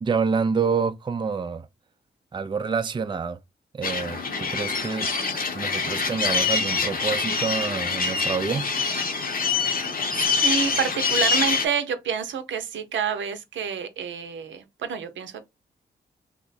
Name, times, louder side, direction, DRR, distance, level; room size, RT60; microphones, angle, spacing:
voice 1, 0.0-1.7 2.3-3.4 3.7-5.1 5.5-8.7, right 5 dB, 25° right, 0.4 m, -27 dB
sound 1, 3.8-11.7, left 4 dB, 50° left, 0.9 m, -25 dB
voice 2, 10.1-15.4, right 7 dB, 75° right, 0.6 m, -28 dB
2.9 x 2.1 x 4.0 m
supercardioid pair, 45°, 19 cm